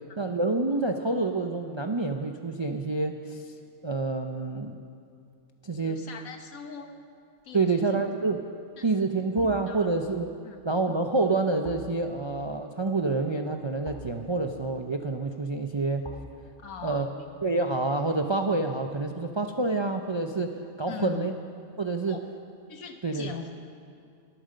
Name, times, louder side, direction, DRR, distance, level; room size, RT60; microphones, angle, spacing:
voice 1, 0.2-3.4 3.8-4.8 5.6-6.0 7.5-8.4 8.8-10.3 10.6-16.1 16.8-17.1 17.4-21.3 21.8-22.2 23.0-23.3, right 3 dB, 40° right, 4 dB, 0.4 m, -27 dB
voice 2, 5.8-6.9 7.4-8.0 8.8-9.1 9.7-9.9 10.4-10.6 16.6-17.2 20.9-21.2 22.1-22.2 22.7-23.6, left 6 dB, 80° left, 5 dB, 1.6 m, -41 dB
sound 1, 7.9-8.0 9.4-20.4 20.7-20.8, left 2 dB, 25° left, 0.8 m, -51 dB
21.5 x 9.1 x 6.6 m, 2.4 s
omnidirectional pair, 1.5 m